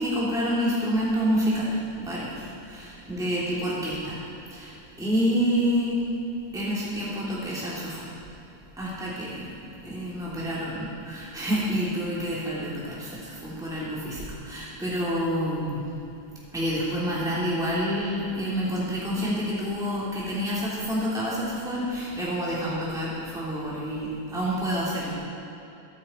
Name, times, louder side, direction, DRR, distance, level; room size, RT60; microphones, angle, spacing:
voice 1, 0.0-4.2 4.5-4.7 5.0-6.0 6.5-8.0 8.8-9.5 9.8-15.8 16.5-25.2, equal, ahead, -8 dB, 2.9 m, -28 dB
22.5 x 9.1 x 4.4 m, 2.8 s
omnidirectional pair, 1.9 m